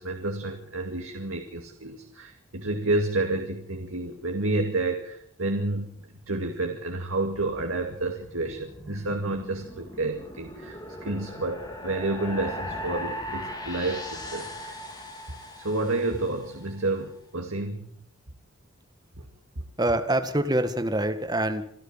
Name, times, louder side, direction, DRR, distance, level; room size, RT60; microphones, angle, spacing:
voice 1, 0.0-5.9 6.3-14.8 15.6-17.9, right 2 dB, 85° right, 3 dB, 2.4 m, -30 dB
sound 1, 7.3-16.7, left 1 dB, 20° left, 4.1 m, -39 dB
voice 2, 19.8-21.6, right 1 dB, 20° right, 8 dB, 1.8 m, -25 dB
26.5 x 13.0 x 7.5 m, 0.65 s
head